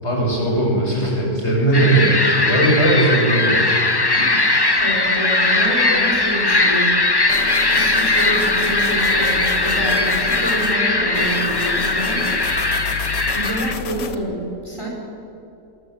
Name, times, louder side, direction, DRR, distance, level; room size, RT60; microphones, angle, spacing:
voice 1, 0.0-3.6 4.2-4.6, right 1 dB, 35° left, -2 dB, 6.7 m, -19 dB
sound 1, 1.7-13.7, left 2 dB, 20° left, 0.8 m, -19 dB
voice 2, 4.8-7.0 7.7-12.4 13.3-14.9, right 1 dB, 15° right, -2 dB, 4.8 m, -27 dB
sound 2, 7.3-10.8 11.1-14.1, left 6 dB, 70° left, 1.8 m, -30 dB
24.0 x 22.5 x 7.9 m, 2.7 s
omnidirectional pair, 1.9 m